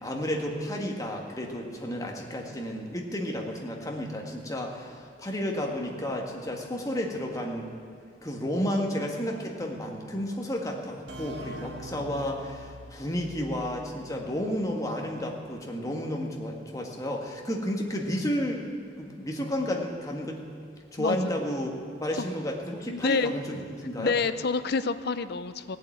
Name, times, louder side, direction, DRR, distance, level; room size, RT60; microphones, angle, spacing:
voice 1, 0.0-7.7 8.2-18.6 19.0-20.4 20.9-21.7 22.0-24.1, equal, 20° left, 0 dB, 1.8 m, -32 dB
sound 1, 11.1-14.6, equal, 70° right, 1.9 m, -44 dB
voice 2, 21.0-21.3 22.9-23.3 24.0-25.8, left 4 dB, 60° left, 12 dB, 0.6 m, -28 dB
16.5 x 8.0 x 9.3 m, 2.5 s
head